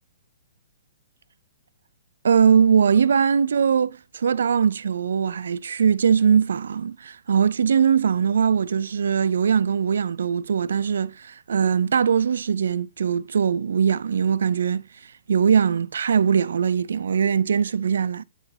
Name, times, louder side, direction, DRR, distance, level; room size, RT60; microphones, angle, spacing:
voice 1, 2.2-14.8 15.3-18.2, right 7 dB, 80° right, 0.6 m, -21 dB
10.0 x 4.5 x 2.8 m
hypercardioid pair, 145°, 0 cm